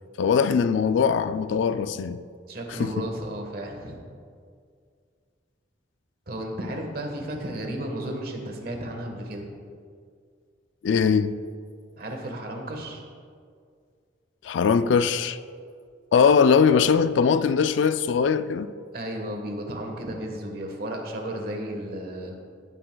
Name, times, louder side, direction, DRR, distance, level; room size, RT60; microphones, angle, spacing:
voice 1, 0.2-2.2 2.7-2.9 10.8-11.4 14.4-15.4 16.1-18.7, left 6 dB, 70° left, 0.3 m, -21 dB
voice 2, 2.5-4.0 6.3-9.5 12.0-13.0 18.9-22.4, right 1 dB, 50° right, 1.3 m, -33 dB
16.0 x 7.5 x 2.3 m
head